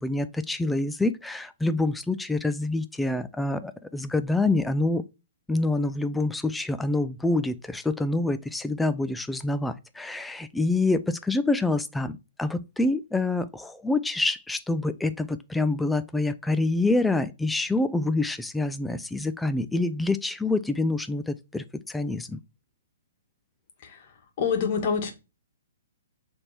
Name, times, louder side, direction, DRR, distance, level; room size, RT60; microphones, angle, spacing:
voice 1, 0.0-5.0 5.5-22.4, left 2 dB, 5° left, 0.5 m, -26 dB
voice 2, 24.4-25.1, left 6 dB, 45° left, 1.9 m, -26 dB
6.7 x 3.6 x 4.3 m
hypercardioid pair, 130°, 0 cm